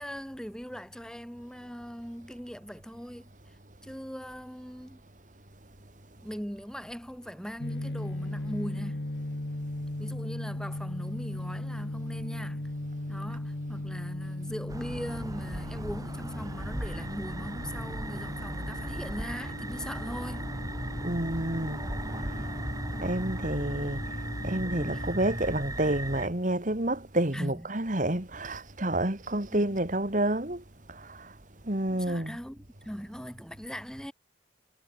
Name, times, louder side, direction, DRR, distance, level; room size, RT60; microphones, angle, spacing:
voice 1, 0.0-3.5 3.8-5.1 6.2-9.1 10.0-12.7 13.1-20.5 24.4-25.1 27.3-27.7 29.5-29.8 31.9-34.1, equal, 5° left, 6.9 m, -40 dB
sound 1, 7.6-25.1, left 1 dB, 85° left, 1.7 m, -38 dB
sound 2, 14.7-26.3, right 1 dB, 20° right, 7.9 m, -36 dB
voice 2, 21.0-21.8 22.2-22.5 23.0-24.1 24.4-31.3 31.6-32.4, right 1 dB, 45° right, 2.6 m, -29 dB
head